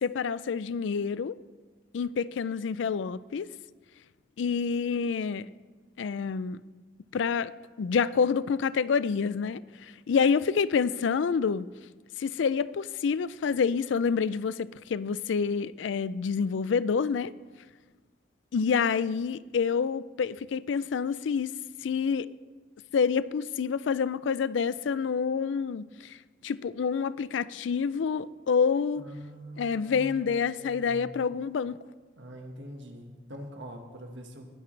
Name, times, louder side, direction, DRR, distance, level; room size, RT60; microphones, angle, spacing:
voice 1, 0.0-1.4 1.9-3.5 4.4-5.5 6.0-6.6 7.1-7.5 7.8-11.7 12.2-17.3 18.5-21.5 21.8-22.3 22.9-26.2 26.4-29.0 29.6-31.8, left 6 dB, 85° left, 0.4 m, -28 dB
voice 2, 28.9-31.3 32.2-34.5, equal, 80° right, 1.6 m, -44 dB
20.5 x 10.0 x 3.3 m
head